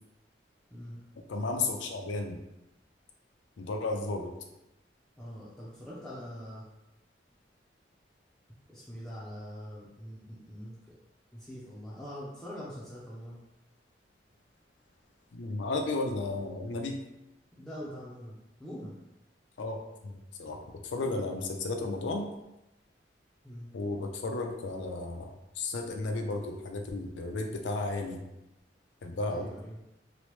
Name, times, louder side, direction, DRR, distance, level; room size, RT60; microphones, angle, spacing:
voice 1, 1.3-2.4 3.6-4.3 15.3-17.0 19.6-19.8 20.0-20.6 20.9-22.3 23.7-28.2 29.0-29.5, left 2 dB, 90° left, 3 dB, 0.4 m, -33 dB
voice 2, 5.2-6.7 8.7-11.0 11.3-13.4 17.5-19.0 21.0-21.2 23.4-23.7 29.3-29.8, equal, 5° left, -9 dB, 0.4 m, -43 dB
2.9 x 2.0 x 3.0 m, 0.91 s
head